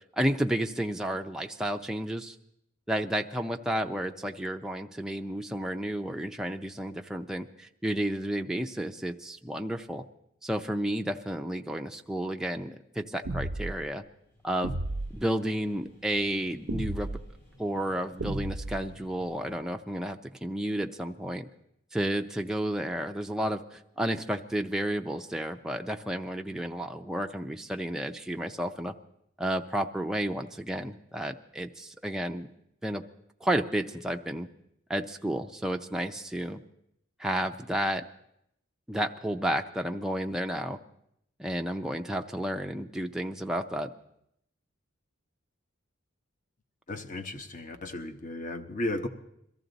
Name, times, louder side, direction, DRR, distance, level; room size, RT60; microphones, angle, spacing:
voice 1, 0.1-2.3 2.9-10.0 10.4-14.0 14.4-14.7 15.1-17.1 17.6-21.5 21.9-28.9 29.4-32.5 32.8-33.0 33.4-34.5 34.9-36.6 37.2-38.0 38.9-40.8 41.4-43.9, right 1 dB, 5° right, 4 dB, 0.5 m, -31 dB
sound 1, 13.3-13.8 14.6-15.2 16.7-17.2 18.2-18.9, right 2 dB, 85° right, 0.7 m, -33 dB
sound 2, 14.1-19.6, left 1 dB, 55° left, 5.1 m, -57 dB
voice 2, 46.9-49.1, left 1 dB, 40° left, 7 dB, 1.0 m, -35 dB
22.5 x 14.0 x 4.0 m, 0.75 s
head